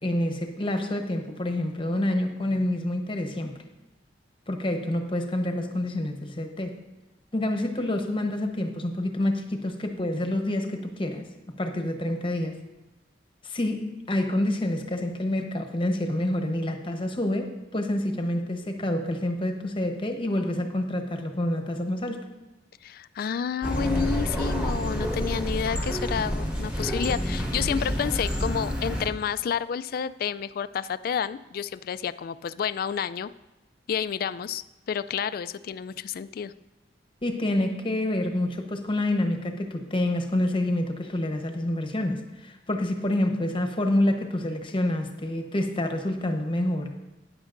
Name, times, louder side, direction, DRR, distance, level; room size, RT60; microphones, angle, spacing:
voice 1, 0.0-3.6 4.5-6.8 7.3-11.3 11.6-12.6 13.4-22.2 37.2-46.9, left 1 dB, 30° left, 4 dB, 0.9 m, -27 dB
voice 2, 22.8-33.3 33.9-36.5, left 7 dB, 55° left, 15 dB, 0.3 m, -30 dB
sound 1, 23.6-29.1, equal, 5° right, 1.4 m, -28 dB
13.0 x 9.5 x 2.6 m, 1.1 s
head